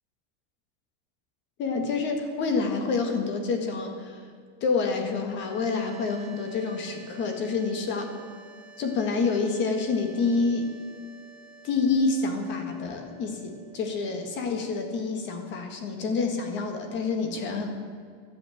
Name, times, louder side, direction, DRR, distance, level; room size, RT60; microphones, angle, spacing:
voice 1, 1.6-4.2 4.6-8.2 8.8-10.7 11.6-17.7, left 4 dB, 30° left, 5 dB, 1.7 m, -28 dB
sound 1, 5.3-16.4, right 6 dB, ahead, 2.3 m, -51 dB
11.5 x 8.1 x 9.2 m, 2.1 s
supercardioid pair, 175°, 36 cm